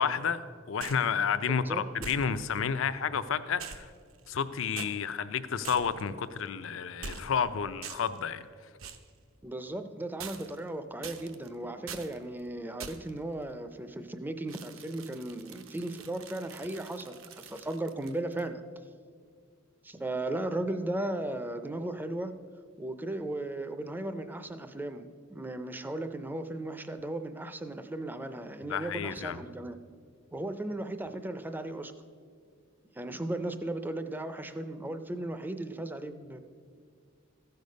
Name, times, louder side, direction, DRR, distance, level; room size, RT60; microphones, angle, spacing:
voice 1, 0.0-3.9 4.3-8.4 28.7-29.4, left 6 dB, 65° left, 13 dB, 0.5 m, -31 dB
sound 1, 0.8-1.1 2.0-2.6 3.6-4.4 4.8-4.9 5.6-6.1 7.0-7.5 7.8-8.2 8.8-9.1 10.2-10.7 11.0-11.5 11.9-12.2 12.8-13.2 14.5-18.5, right 6 dB, 70° right, 0.7 m, -44 dB
voice 2, 1.4-1.8 9.4-18.6 19.8-22.4 22.8-29.8 30.3-31.9 32.9-36.4, right 1 dB, 10° right, 9 dB, 0.4 m, -36 dB
14.0 x 6.6 x 5.3 m, 2.1 s
head